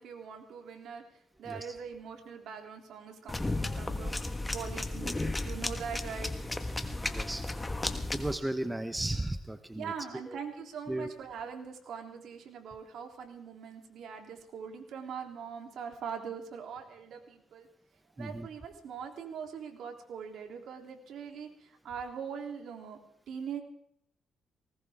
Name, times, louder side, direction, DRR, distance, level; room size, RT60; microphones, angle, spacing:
voice 1, 0.0-6.3 9.8-17.7 18.2-23.0 23.3-23.6, right 7 dB, 70° right, 3 dB, 3.2 m, -42 dB
voice 2, 1.5-1.8 6.8-7.4 8.1-9.9 10.3-10.4 10.9-11.1 18.2-18.5, right 1 dB, 10° right, 9 dB, 1.0 m, -35 dB
sound 1, 3.3-8.3, left 2 dB, 15° left, 1.5 m, -34 dB
19.5 x 19.0 x 3.6 m, 0.73 s
cardioid pair, 90°, 0 cm